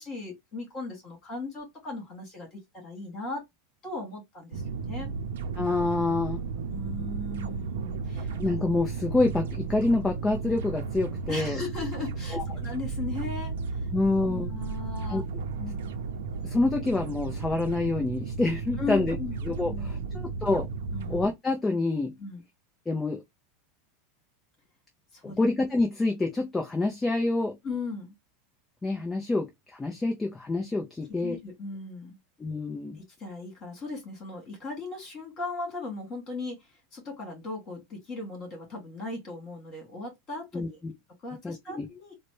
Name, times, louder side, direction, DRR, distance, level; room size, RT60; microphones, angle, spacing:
voice 1, 0.0-3.4 3.8-5.1 6.7-8.3 11.3-13.9 14.2-15.2 15.6-15.8 18.8-19.4 19.6-20.0 20.9-21.2 22.2-22.4 25.1-25.4 27.6-28.1 31.2-32.2 33.0-40.8 41.2-42.1, left 3 dB, 25° left, 2.3 m, -37 dB
sound 1, 4.5-21.3, right 5 dB, 90° right, 0.6 m, -34 dB
voice 2, 5.6-6.4 8.4-11.6 12.3-12.4 13.9-14.5 15.1-15.2 16.4-19.1 19.5-20.7 21.1-22.1 22.9-23.2 25.4-27.6 28.8-31.4 32.4-33.0 40.5-40.9 41.4-41.9, left 2 dB, 10° left, 0.5 m, -27 dB
4.0 x 2.2 x 3.2 m
supercardioid pair, 165°, 0 cm